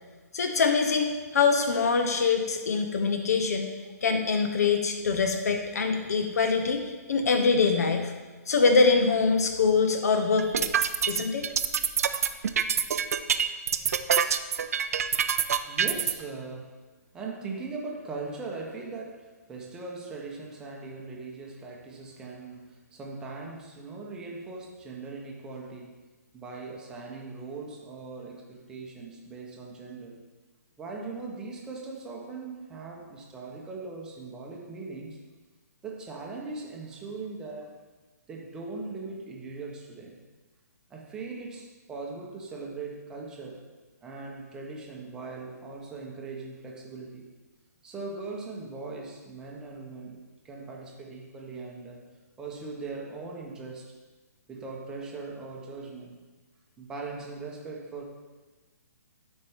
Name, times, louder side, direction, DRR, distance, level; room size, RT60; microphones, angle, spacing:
voice 1, 0.3-3.7 4.0-6.8 7.1-8.1 8.5-11.5, left 4 dB, 65° left, 5 dB, 0.8 m, -24 dB
sound 1, 10.4-16.1, right 7 dB, 60° right, 0.4 m, -25 dB
voice 2, 15.1-16.8 17.1-25.9 26.3-30.2 30.8-35.2 35.8-37.7 38.3-40.2 40.9-43.6 44.0-47.3 47.8-50.2 50.4-52.0 52.4-53.9 54.5-56.1 56.8-58.0, right 3 dB, 5° right, -1 dB, 0.7 m, -40 dB
12.5 x 4.4 x 3.5 m, 1.3 s
hypercardioid pair, 165°, 9 cm